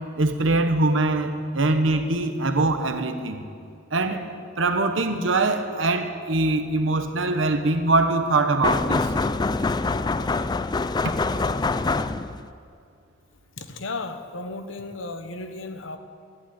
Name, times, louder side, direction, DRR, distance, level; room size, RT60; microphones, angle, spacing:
voice 1, 0.2-3.4 3.9-4.3 4.6-9.1 11.0-11.1, right 2 dB, 80° right, 7 dB, 1.2 m, -23 dB
sound 1, 8.6-12.5, left 3 dB, 20° left, 0.3 m, -25 dB
voice 2, 13.6-16.0, left 3 dB, 85° left, 8 dB, 1.1 m, -34 dB
11.5 x 11.0 x 9.4 m, 2.4 s
head